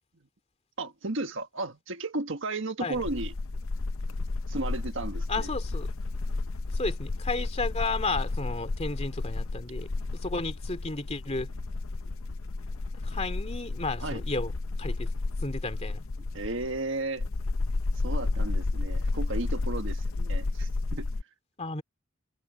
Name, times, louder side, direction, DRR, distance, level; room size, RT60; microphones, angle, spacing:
voice 1, 0.8-3.3 4.5-5.5 14.0-14.2 16.3-17.3 18.0-21.1, right 2 dB, 60° right, 1.6 m, -34 dB
sound 1, 2.9-21.2, left 3 dB, 75° left, 0.7 m, -32 dB
voice 2, 5.3-5.9 6.7-9.9 10.1-11.5 13.0-14.5 14.8-15.1 15.4-16.0 21.6-21.8, left 3 dB, 30° left, 2.5 m, -33 dB
open air
head